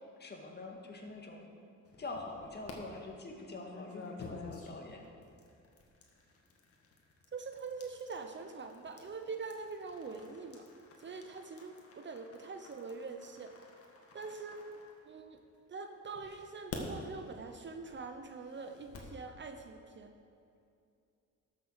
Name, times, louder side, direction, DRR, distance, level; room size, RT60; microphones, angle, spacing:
voice 1, 0.2-1.5 2.0-5.1, left 2 dB, 35° left, 1 dB, 1.9 m, -45 dB
sound 1, 1.9-2.7 3.5-15.5 16.2-19.2, left 4 dB, 50° left, 1.8 m, -51 dB
voice 2, 7.3-10.7 11.0-13.5 14.1-14.6 15.0-15.4 15.7-20.1, right 4 dB, 40° right, 6 dB, 0.9 m, -44 dB
12.5 x 6.7 x 6.5 m, 2.5 s
cardioid pair, 90°, 30 cm